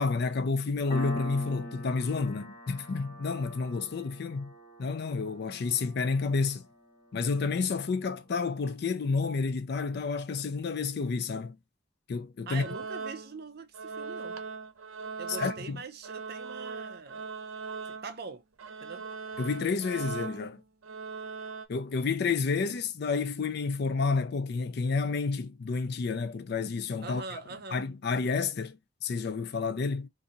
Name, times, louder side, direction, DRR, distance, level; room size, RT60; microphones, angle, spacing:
voice 1, 0.0-4.5 4.8-6.6 7.1-11.6 12.1-12.6 15.4-15.8 19.4-20.6 21.7-27.4 27.7-30.1, left 4 dB, 50° left, 0.4 m, -30 dB
Piano, 0.9-8.1, equal, 25° left, 1.7 m, -44 dB
voice 2, 12.5-14.5 15.2-17.3 17.9-18.4 18.8-19.1 27.0-27.9, right 4 dB, 50° right, 0.5 m, -43 dB
sound 1, 12.5-13.5 13.7-18.3 18.6-21.7, right 4 dB, 85° right, 0.7 m, -40 dB
2.7 x 2.6 x 3.9 m
head